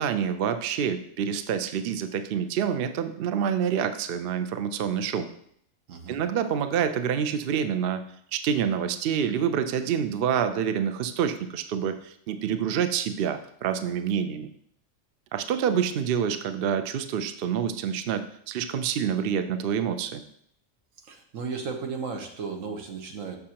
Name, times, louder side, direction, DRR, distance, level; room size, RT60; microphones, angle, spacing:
voice 1, 0.0-5.3 6.1-14.5 15.3-20.2, right 8 dB, 60° right, 9 dB, 0.6 m, -27 dB
voice 2, 21.0-23.4, right 5 dB, 80° right, 3 dB, 1.4 m, -35 dB
6.8 x 6.3 x 2.8 m, 0.67 s
omnidirectional pair, 1.3 m